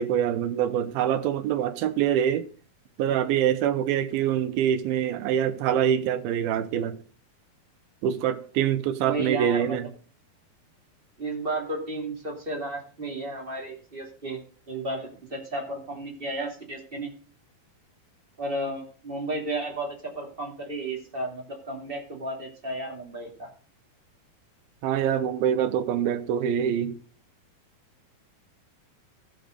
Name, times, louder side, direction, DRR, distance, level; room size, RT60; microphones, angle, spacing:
voice 1, 0.0-2.5 3.0-7.0 8.0-9.8 24.8-27.0, right 9 dB, 85° right, 2.6 m, -25 dB
voice 2, 9.0-9.8 11.2-14.4 14.7-17.1 18.4-23.5, right 2 dB, 15° right, 2.3 m, -33 dB
14.5 x 6.6 x 6.6 m
omnidirectional pair, 4.3 m